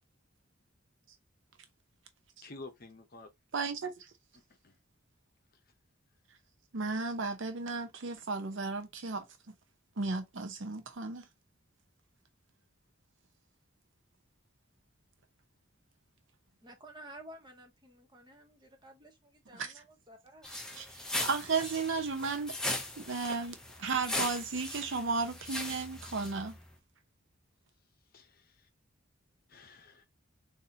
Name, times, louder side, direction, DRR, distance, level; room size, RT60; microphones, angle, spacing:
voice 1, 2.4-3.3 4.3-4.8 5.5-5.6 28.1-28.7 29.5-30.0, left 3 dB, 45° left, 0.8 m, -51 dB
voice 2, 3.5-4.1 6.7-9.2 10.0-11.3 19.5-19.7 20.7-22.5 23.0-26.6, right 4 dB, 65° right, 0.7 m, -34 dB
voice 3, 16.6-20.6, right 1 dB, 20° right, 0.9 m, -53 dB
sound 1, 20.4-26.6, left 1 dB, 5° left, 0.5 m, -39 dB
4.1 x 2.7 x 2.7 m
head